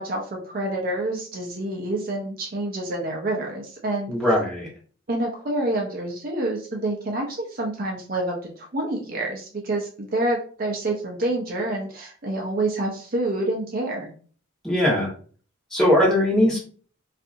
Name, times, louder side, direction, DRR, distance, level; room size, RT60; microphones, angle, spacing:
voice 1, 0.0-4.1 5.1-14.1, right 1 dB, 45° right, 0 dB, 0.5 m, -27 dB
voice 2, 4.1-4.7 14.6-15.1 15.7-16.6, left 1 dB, 5° left, -6 dB, 1.1 m, -20 dB
2.7 x 2.4 x 2.5 m, 0.43 s
head